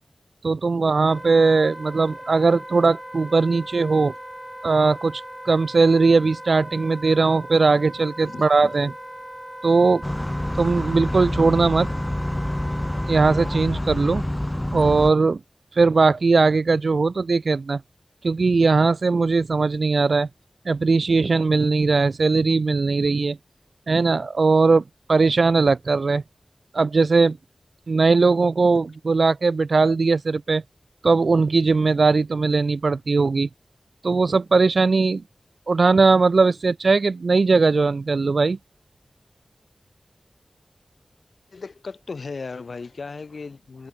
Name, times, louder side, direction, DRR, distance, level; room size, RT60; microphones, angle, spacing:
voice 1, 0.4-4.1 4.6-8.9 9.6-10.0 10.6-11.9 13.1-14.2 14.7-15.4 15.8-17.8 18.2-20.3 20.7-23.4 23.9-24.8 25.1-26.2 26.7-27.4 27.9-30.6 31.0-33.5 34.0-35.2 35.7-38.6, right 4 dB, 75° right, 0.4 m, -19 dB
Wind instrument woodwind instrument, 1.0-13.7, equal, 10° right, 1.6 m, -39 dB
voice 2, 8.2-8.7 41.5-43.9, left 4 dB, 80° left, 3.1 m, -36 dB
sound 1, 10.0-15.1, left 1 dB, 15° left, 0.9 m, -27 dB
wide cardioid pair, 60°, 0 cm